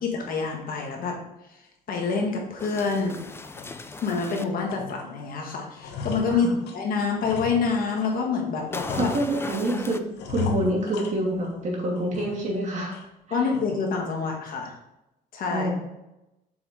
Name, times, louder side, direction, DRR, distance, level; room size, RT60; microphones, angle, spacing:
voice 1, 0.0-1.2 1.9-3.2 4.0-9.1 13.3-14.7 15.3-15.7, left 5 dB, 60° left, 1 dB, 1.6 m, -27 dB
sound 1, 2.2-2.3 2.8-2.9 3.4-4.3 4.7-5.3 5.6-8.2 8.7-9.7 10.1-11.6 11.9-12.6 12.9-13.0 13.5-13.9, left 6 dB, 80° left, 1.1 m, -37 dB
sound 2, 2.6-4.4 8.7-10.0, left 3 dB, 15° left, 0.4 m, -37 dB
voice 2, 8.9-10.0 10.3-13.0 13.3-13.4 15.5-15.8, right 1 dB, 45° right, -2 dB, 2.5 m, -27 dB
7.0 x 4.9 x 3.8 m, 0.92 s
cardioid pair, 110°, 17 cm